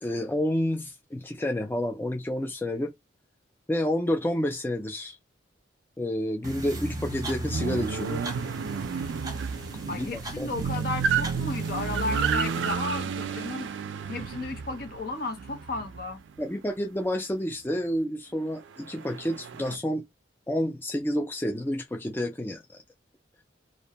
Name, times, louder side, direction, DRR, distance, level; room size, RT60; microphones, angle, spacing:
voice 1, 0.0-2.9 3.7-5.2 6.0-8.3 9.9-10.5 16.4-20.1 20.5-22.8, left 1 dB, 10° left, 0.3 m, -29 dB
sound 1, 6.4-12.7, right 1 dB, 20° right, 0.7 m, -38 dB
sound 2, 7.5-16.4 18.8-19.8, right 6 dB, 75° right, 0.3 m, -31 dB
voice 2, 9.9-13.7 14.1-16.2, left 3 dB, 55° left, 0.6 m, -34 dB
2.5 x 2.1 x 2.8 m
head